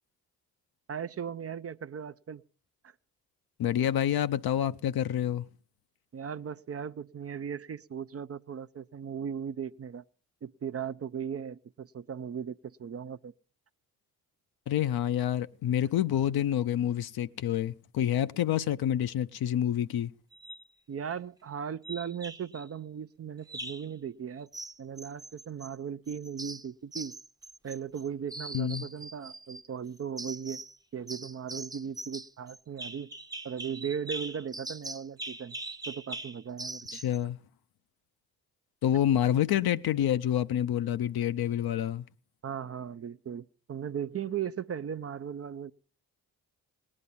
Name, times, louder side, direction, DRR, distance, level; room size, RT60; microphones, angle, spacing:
voice 1, 0.9-2.4 2.8-2.9 6.1-10.0 10.4-13.3 20.9-24.5 24.8-27.2 27.6-30.6 30.9-33.1 33.4-35.6 35.9-37.0 42.4-45.7, right 7 dB, 35° right, 0.6 m, -37 dB
voice 2, 3.6-5.5 14.7-20.1 28.5-28.9 36.9-37.4 38.8-42.0, left 11 dB, 55° left, 0.8 m, -28 dB
sound 1, 20.3-20.7 21.8-22.6 23.5-23.9 24.5-25.8 26.1-28.0 28.3-29.6 30.2-30.8 31.1-37.2, right 2 dB, 10° right, 0.8 m, -42 dB
18.5 x 9.9 x 5.6 m
hypercardioid pair, 40°, 44 cm